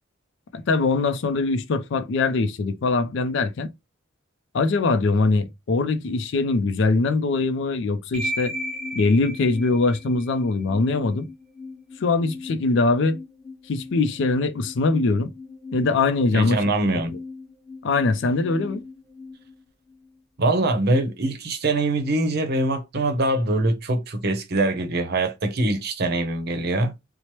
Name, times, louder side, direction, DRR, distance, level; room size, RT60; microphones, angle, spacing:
voice 1, 0.5-3.7 4.5-8.5 8.9-11.3 12.0-13.2 13.7-15.3 15.7-16.6 17.8-18.8, left 3 dB, 65° left, 0.4 m, -22 dB
sound 1, 8.1-20.2, left 1 dB, ahead, 1.0 m, -37 dB
voice 2, 16.3-17.2 20.4-26.9, right 2 dB, 55° right, 0.6 m, -23 dB
2.9 x 2.0 x 3.0 m
head